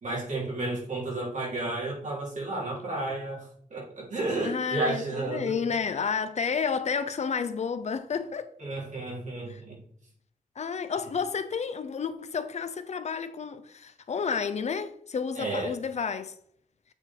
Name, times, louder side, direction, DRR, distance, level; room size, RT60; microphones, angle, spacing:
voice 1, 0.0-5.6 8.6-9.8 15.4-15.8, right 2 dB, 65° right, 3.2 m, -32 dB
voice 2, 4.4-8.5 9.5-9.6 10.6-16.3, left 6 dB, 55° left, 0.6 m, -31 dB
7.9 x 3.9 x 4.4 m
wide cardioid pair, 125°, 14 cm